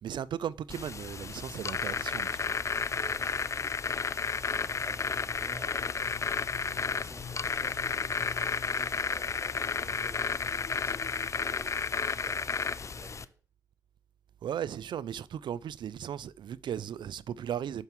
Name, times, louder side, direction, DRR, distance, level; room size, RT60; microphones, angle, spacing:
voice 1, 0.0-2.3 14.4-17.8, right 9 dB, 70° right, 0.5 m, -36 dB
sound 1, 0.7-13.3, left 5 dB, 40° left, 0.6 m, -32 dB
voice 2, 2.9-4.0 4.4-11.1 11.3-13.4, right 1 dB, 30° right, 4.5 m, -51 dB
sound 2, 5.4-12.3, left 8 dB, 70° left, 1.1 m, -50 dB
9.6 x 5.7 x 7.4 m
cardioid pair, 70°, 8 cm